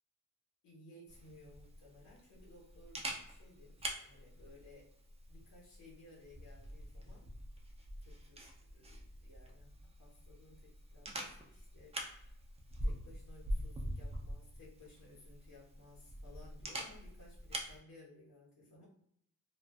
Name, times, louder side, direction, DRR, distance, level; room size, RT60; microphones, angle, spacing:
voice 1, 0.6-3.0 3.3-4.9 5.3-7.3 8.0-8.4 8.7-9.7 10.0-11.9 12.8-18.9, left 2 dB, 85° left, -6 dB, 1.1 m, -59 dB
Camera, 1.1-17.8, equal, 20° right, 0.3 m, -45 dB
2.4 x 2.3 x 2.2 m, 0.69 s
wide cardioid pair, 110°, 34 cm